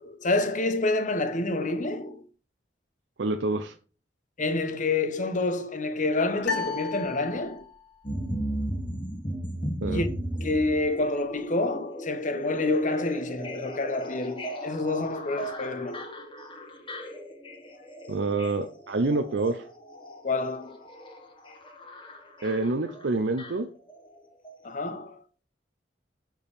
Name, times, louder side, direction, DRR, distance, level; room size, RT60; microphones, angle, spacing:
voice 1, 0.2-2.2 4.4-7.6 9.9-16.0 20.2-20.8 24.6-25.2, left 2 dB, 45° left, 1.0 m, -28 dB
voice 2, 3.2-3.7 9.8-10.0 18.1-19.7 22.4-23.7, right 3 dB, 75° right, 0.6 m, -27 dB
sound 1, 6.4-7.9, left 5 dB, 90° left, 1.9 m, -33 dB
sound 2, 8.0-24.2 24.4-24.5, right 1 dB, 30° left, 1.6 m, -36 dB
7.1 x 4.6 x 5.2 m
head